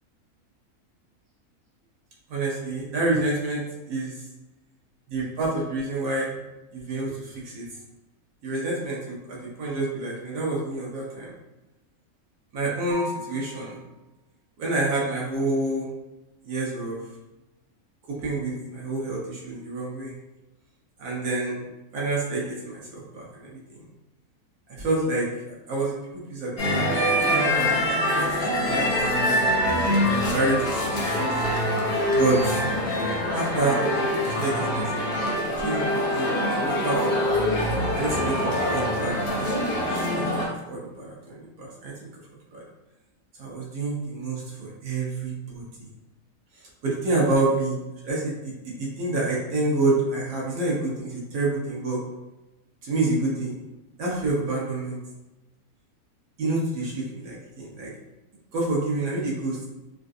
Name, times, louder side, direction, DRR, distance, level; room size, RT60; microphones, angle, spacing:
voice 1, 2.3-4.2 5.1-6.4 6.7-7.7 8.4-11.3 12.5-13.8 14.6-15.9 16.4-17.0 18.1-20.1 21.0-21.7 21.9-23.9 24.8-26.0 26.3-28.9 29.2-29.6 30.3-31.3 32.1-32.6 33.3-33.9 34.2-36.3 36.5-37.2 38.0-39.9 40.1-42.1 42.5-42.6 43.4-45.6 46.8-47.8 48.0-52.0 52.8-53.6 54.0-55.0 56.4-57.9 58.5-59.7, right 2 dB, 85° right, -5 dB, 1.3 m, -28 dB
sound 1, 12.9-14.0, left 3 dB, 80° left, 1.3 m, -38 dB
sound 2, 26.6-40.5, left 1 dB, 50° left, 0.8 m, -24 dB
3.7 x 2.4 x 2.5 m, 1.0 s
omnidirectional pair, 1.5 m